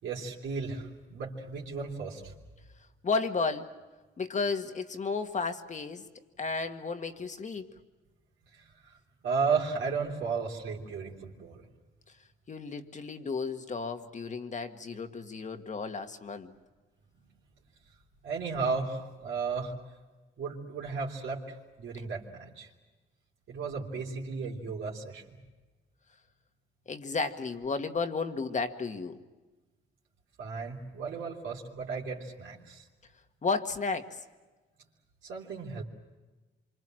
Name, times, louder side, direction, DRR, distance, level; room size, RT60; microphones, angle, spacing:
voice 1, 0.0-2.3 8.5-8.9 9.2-11.7 18.2-19.7 20.4-22.7 23.5-25.4 30.4-32.8 35.2-35.8, right 5 dB, 75° right, -4 dB, 3.5 m, -34 dB
voice 2, 3.0-3.7 4.2-6.0 6.4-7.7 12.5-16.5 26.9-29.2 33.4-34.2, left 4 dB, 35° left, 7 dB, 1.8 m, -33 dB
26.5 x 25.0 x 7.7 m, 1.2 s
cardioid pair, 90°, 20 cm